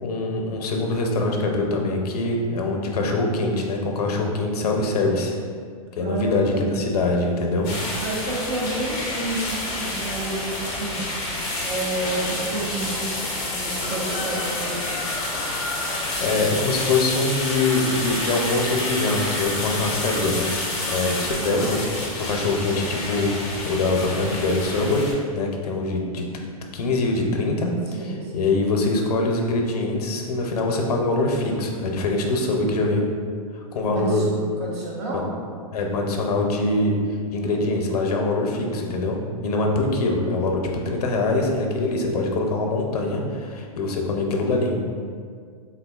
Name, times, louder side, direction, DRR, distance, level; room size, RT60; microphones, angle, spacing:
voice 1, 0.0-5.3 5.9-7.7 15.6-15.8 16.2-23.4 23.7-25.0 25.3-26.3 26.7-27.7 28.0-33.1 33.5-34.2 35.1-35.2 35.7-36.9 37.3-39.2 39.4-44.8, left 2 dB, 90° left, 1 dB, 0.5 m, -23 dB
voice 2, 6.0-6.8 8.0-11.0 11.6-14.8 21.4-21.7 27.9-28.5 33.8-34.3 34.6-35.3, right 2 dB, 45° right, -4 dB, 0.7 m, -30 dB
sound 1, 7.6-25.1, left 2 dB, 20° left, 0.4 m, -29 dB
3.4 x 2.3 x 2.3 m, 2.1 s
supercardioid pair, 170°, 19 cm